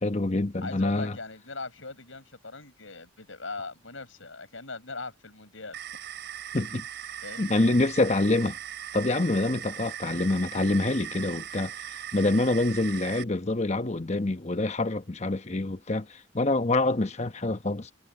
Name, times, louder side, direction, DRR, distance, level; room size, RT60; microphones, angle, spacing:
voice 1, 0.0-1.2 6.5-6.9 7.4-8.6 8.9-11.7 12.1-17.9, left 2 dB, 35° left, 1.0 m, -26 dB
voice 2, 0.6-5.8 7.2-7.6, left 3 dB, 85° left, 7.5 m, -40 dB
sound 1, 5.7-13.2, right 10 dB, 60° right, 4.9 m, -39 dB
head